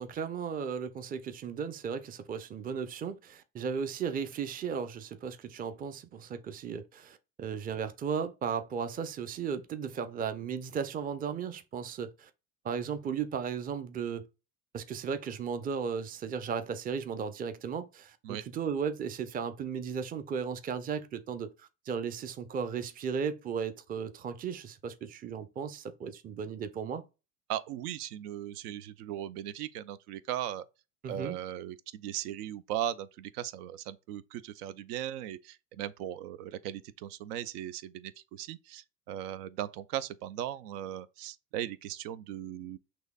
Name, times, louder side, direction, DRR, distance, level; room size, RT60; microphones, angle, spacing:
voice 1, 0.0-12.3 12.6-14.3 14.7-27.0 31.0-31.4, right 6 dB, 20° right, 0.4 m, -35 dB
voice 2, 27.5-30.7 31.1-42.8, right 11 dB, 75° right, 0.5 m, -38 dB
6.1 x 2.7 x 2.2 m
hypercardioid pair, 75°, 47 cm